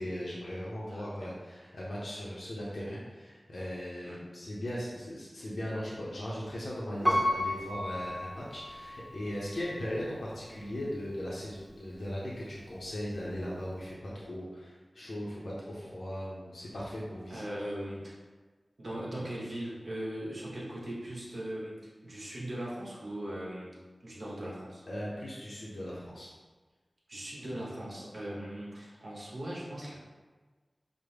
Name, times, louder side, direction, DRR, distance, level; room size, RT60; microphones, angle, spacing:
voice 1, 0.0-17.4 24.9-26.3, equal, 85° left, -6 dB, 0.6 m, -38 dB
voice 2, 0.9-1.3 4.0-4.2 17.3-18.2 18.8-21.7 22.0-23.7 24.0-24.8 27.1-29.9, right 1 dB, 70° right, -5 dB, 1.1 m, -39 dB
Piano, 7.0-9.0 9.6-9.7, equal, 15° right, 0.9 m, -31 dB
4.9 x 2.1 x 3.4 m, 1.3 s
wide cardioid pair, 45°, 0 cm